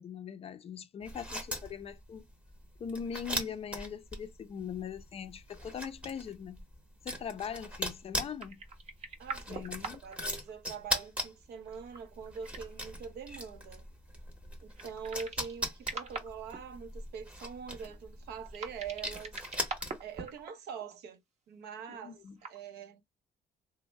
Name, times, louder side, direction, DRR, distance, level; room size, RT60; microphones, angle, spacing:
voice 1, 0.0-2.3 2.8-6.6 7.0-8.6 9.5-10.0 21.9-22.4, left 7 dB, 35° left, 0.4 m, -41 dB
sound 1, 1.0-20.2, equal, 5° right, 0.8 m, -40 dB
sound 2, 8.4-10.2 10.5-10.6 11.7-12.8 14.7-15.6 15.8-16.6 18.5-20.5 20.8-20.9 22.3-22.6, right 4 dB, 40° right, 0.8 m, -43 dB
voice 2, 9.2-13.8 14.6-19.4 20.0-21.2 21.5-23.0, right 6 dB, 75° right, 0.7 m, -44 dB
3.1 x 2.1 x 3.1 m
cardioid pair, 110°, 17 cm